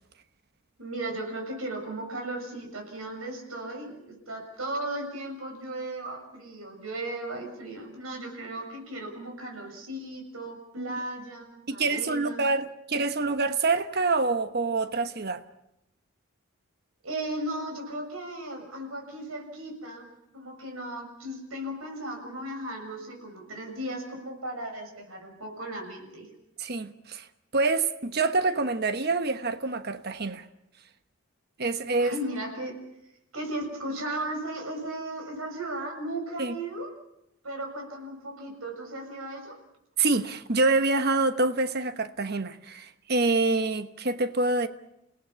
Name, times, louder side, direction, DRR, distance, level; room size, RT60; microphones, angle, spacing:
voice 1, 0.8-12.5 17.0-26.3 32.0-32.8 33.3-36.9 37.4-39.5, right 1 dB, 85° right, 6.8 m, -36 dB
voice 2, 11.7-15.4 26.6-27.3 27.5-30.4 31.6-32.2 36.4-36.6 40.0-44.7, right 3 dB, 50° right, 1.2 m, -26 dB
30.0 x 18.0 x 7.1 m
head